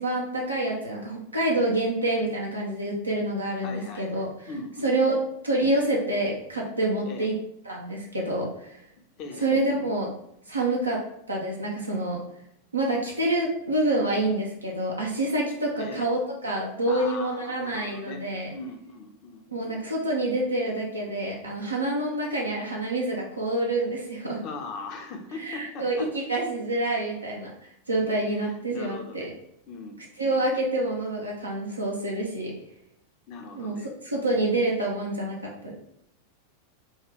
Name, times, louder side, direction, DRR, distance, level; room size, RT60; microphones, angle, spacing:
voice 1, 0.0-4.3 4.8-5.2 5.4-7.4 7.6-8.8 9.4-10.1 10.5-11.0 11.3-12.2 12.7-18.5 19.5-24.4 25.4-27.5 27.9-29.3 30.2-32.5 33.5-33.8 34.0-35.7, right 1 dB, 80° right, -2 dB, 0.5 m, -27 dB
voice 2, 3.6-5.2 7.0-7.3 9.2-9.5 15.8-16.1 16.9-18.2 18.5-19.8 24.4-26.1 28.4-29.3 29.7-30.0 30.2-30.4 31.0-31.1 33.3-34.6, left 3 dB, 40° left, 4 dB, 0.5 m, -40 dB
2.7 x 2.3 x 3.4 m, 0.74 s
figure-of-eight pair, 90°, 0 cm